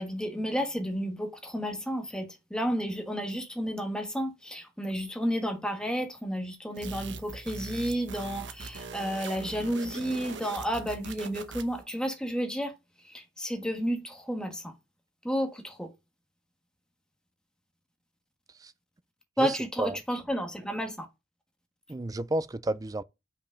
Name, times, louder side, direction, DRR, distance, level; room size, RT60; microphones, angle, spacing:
voice 1, 0.0-12.7 13.0-14.7 15.2-15.9 19.4-21.1, equal, 5° left, 1.4 m, -31 dB
sound 1, 6.8-11.8, right 4 dB, 70° right, 1.0 m, -41 dB
voice 2, 19.4-20.0 21.9-23.0, right 2 dB, 20° right, 0.4 m, -31 dB
5.7 x 5.2 x 5.0 m
head